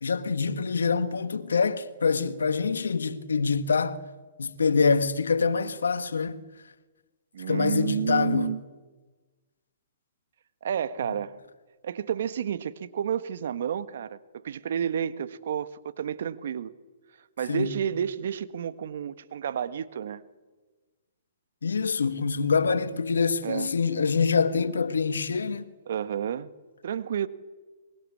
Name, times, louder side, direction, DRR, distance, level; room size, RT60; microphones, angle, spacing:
voice 1, 0.0-4.0 4.4-6.4 7.5-8.5 17.5-17.7 21.6-25.7, left 5 dB, 80° left, 1.5 m, -25 dB
voice 2, 7.3-8.6 10.6-11.4 11.8-16.7 17.4-20.2 23.4-23.7 25.9-26.5 26.8-27.3, right 8 dB, 65° right, 1.5 m, -30 dB
23.5 x 22.5 x 8.5 m
hypercardioid pair, 125°, 0 cm